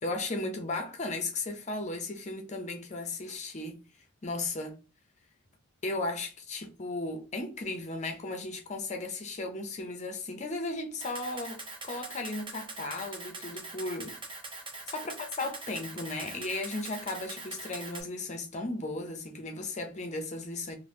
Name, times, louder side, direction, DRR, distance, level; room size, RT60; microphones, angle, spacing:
voice 1, 0.0-3.8 4.2-4.8 5.8-14.1 14.9-20.8, left 2 dB, 35° left, 0.6 m, -35 dB
Camera, 11.0-18.0, right 3 dB, 25° right, 0.8 m, -42 dB
2.9 x 2.1 x 3.3 m
head